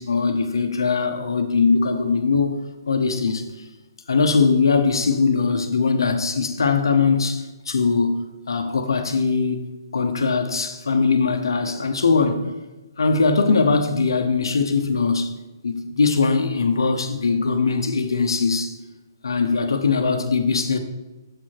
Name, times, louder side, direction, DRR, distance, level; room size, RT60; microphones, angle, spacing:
voice 1, 0.0-2.6 2.9-3.4 4.1-12.4 13.0-15.3 15.6-18.8 19.2-20.8, left 4 dB, 90° left, 0.8 m, -21 dB
6.8 x 4.7 x 4.5 m
hypercardioid pair, 180°, 2 cm